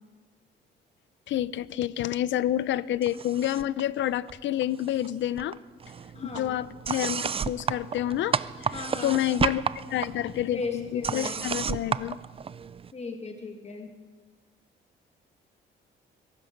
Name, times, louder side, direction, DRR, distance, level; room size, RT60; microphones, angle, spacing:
voice 1, 1.3-5.6 6.3-8.7 9.0-9.6 9.9-12.2, left 12 dB, 70° left, 19 dB, 0.6 m, -28 dB
sound 1, 3.0-3.8 4.1-5.1 5.4-12.9, right 6 dB, 30° right, 0.4 m, -32 dB
voice 2, 6.1-6.6 8.7-9.2 10.2-11.5 12.9-13.9, left 4 dB, 35° left, 3 dB, 2.1 m, -37 dB
22.0 x 12.0 x 5.3 m, 1.5 s
cardioid pair, 90°, 20 cm